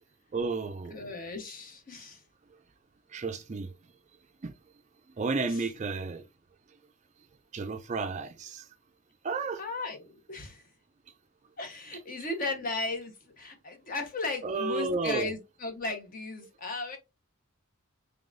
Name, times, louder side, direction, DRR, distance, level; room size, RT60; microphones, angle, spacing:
voice 1, 0.3-1.0 3.1-3.7 4.4-4.5 5.1-6.3 7.5-8.7 9.2-9.6 14.4-15.3, right 4 dB, 30° right, 0.4 m, -32 dB
voice 2, 0.9-2.2 5.5-5.6 9.6-10.7 11.6-17.0, left 3 dB, 40° left, 1.0 m, -36 dB
3.7 x 3.4 x 2.5 m
head